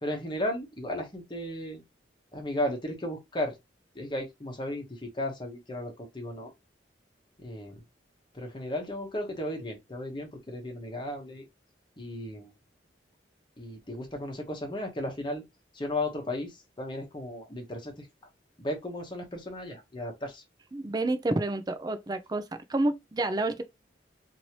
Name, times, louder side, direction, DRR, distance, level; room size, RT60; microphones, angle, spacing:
voice 1, 0.0-1.8 2.3-3.6 3.9-6.5 7.4-7.8 8.3-11.5 12.0-12.5 13.6-15.4 15.7-18.1 18.6-20.4, left 1 dB, 25° left, 1.0 m, -35 dB
voice 2, 20.7-22.4 22.7-23.6, right 2 dB, 20° right, 0.4 m, -29 dB
3.1 x 2.7 x 2.8 m
head